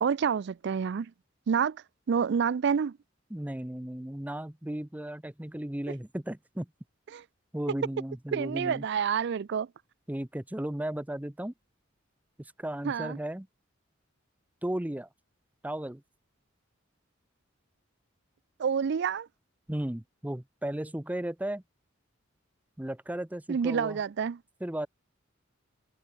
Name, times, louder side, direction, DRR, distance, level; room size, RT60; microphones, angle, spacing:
voice 1, 0.0-1.1 1.5-3.0 7.1-7.2 8.3-9.7 12.8-13.2 18.6-19.3 23.5-24.4, right 6 dB, 55° right, 0.4 m, -28 dB
voice 2, 3.3-6.7 7.5-8.8 10.1-11.5 12.4-13.5 14.6-15.1 15.6-16.0 19.7-21.6 22.8-24.0 24.6-24.9, right 1 dB, 10° right, 0.6 m, -35 dB
head